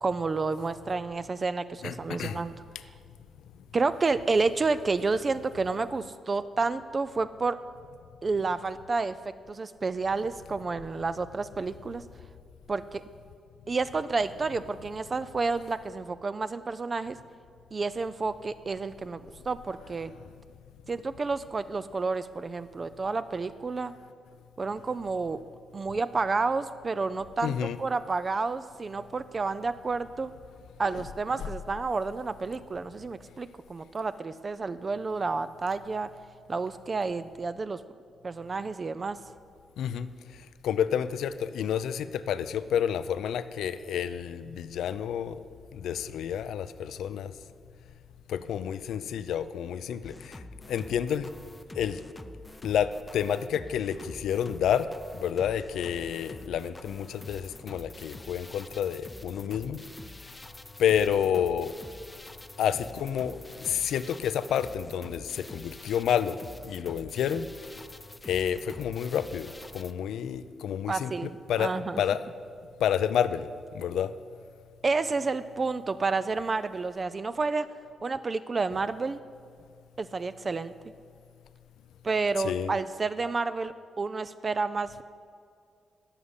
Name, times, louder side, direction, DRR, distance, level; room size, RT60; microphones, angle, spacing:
voice 1, 0.0-2.5 3.7-7.6 8.2-12.0 12.7-13.0 13.7-17.2 17.7-19.2 19.5-20.1 20.9-23.9 24.6-25.4 25.7-30.3 30.8-36.1 36.5-37.8 38.2-39.2 70.9-72.0 74.8-77.7 78.0-79.2 80.0-80.7 82.0-85.0, right 4 dB, 35° right, 13 dB, 0.4 m, -30 dB
voice 2, 1.8-2.4 27.4-27.8 30.9-31.0 39.8-40.1 40.6-45.4 45.7-47.3 48.3-50.4 50.7-51.3 51.8-52.0 52.6-54.9 55.2-59.8 60.8-61.7 62.6-66.4 66.6-67.4 68.3-72.3 72.8-73.5 73.7-74.1 82.4-82.7, left 9 dB, 85° left, 13 dB, 0.5 m, -29 dB
sound 1, 50.0-69.9, left 2 dB, 15° left, 0.6 m, -46 dB
14.0 x 6.5 x 9.8 m, 2.2 s
cardioid pair, 110°, 0 cm